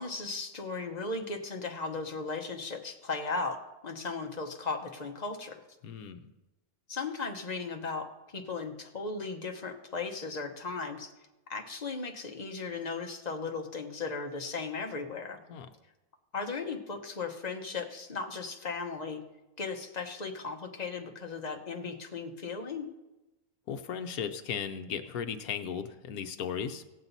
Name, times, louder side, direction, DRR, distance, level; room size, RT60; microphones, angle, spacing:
voice 1, 0.0-5.6 6.9-11.1 11.5-15.4 16.3-19.2 19.6-22.9, left 4 dB, 30° left, 3 dB, 1.0 m, -36 dB
voice 2, 5.8-6.2 15.5-15.7 23.7-26.8, left 7 dB, 75° left, 8 dB, 1.2 m, -36 dB
17.5 x 7.5 x 4.1 m, 1.0 s
omnidirectional pair, 1.6 m